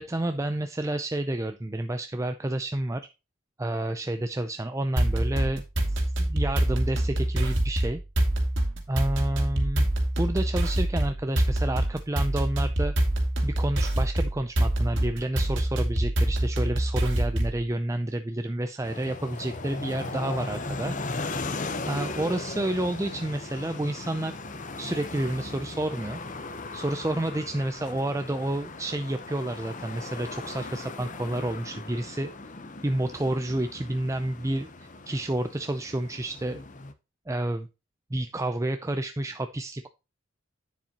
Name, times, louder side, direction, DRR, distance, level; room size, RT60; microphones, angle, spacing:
voice 1, 0.0-3.1 3.6-8.0 8.9-9.9 10.1-12.9 13.4-21.0 21.9-24.4 24.8-26.2 26.7-32.3 32.8-36.6 37.3-37.7 38.1-39.9, right 1 dB, 15° right, 8 dB, 0.4 m, -30 dB
sound 1, 5.0-17.6, right 1 dB, 55° right, 2.4 m, -25 dB
sound 2, 18.8-36.9, left 3 dB, 35° left, 0.9 m, -37 dB
9.8 x 7.2 x 2.9 m, 0.28 s
head